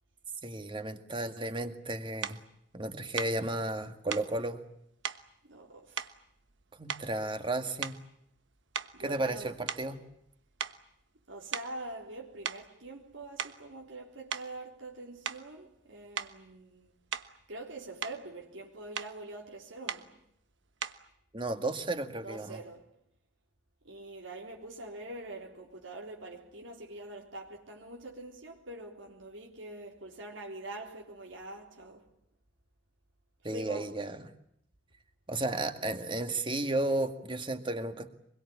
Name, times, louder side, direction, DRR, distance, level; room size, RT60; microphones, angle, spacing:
voice 1, 0.4-2.4 2.7-4.6 6.7-8.0 9.0-10.0 21.3-22.6 33.4-34.3 35.3-38.1, right 2 dB, 25° right, 2.0 m, -33 dB
sound 1, 2.2-2.4 3.2-3.4 4.1-4.3 5.0-5.3 6.0-6.6 6.9-7.3 7.8-8.2 8.7-10.3 10.6-10.8 11.5-11.8 12.5-12.7 13.2-13.7 14.3-14.5 15.3-15.5 16.2-16.4 17.1-17.4 17.8-18.2 19.0-19.2 19.9-20.1 20.8-21.1, right 7 dB, 70° right, 1.3 m, -38 dB
voice 2, 5.4-6.0 8.9-9.5 11.3-16.9 17.5-20.2 22.2-22.9 23.8-32.1 33.4-33.9, right 2 dB, 85° right, 3.8 m, -44 dB
24.5 x 22.0 x 8.6 m
head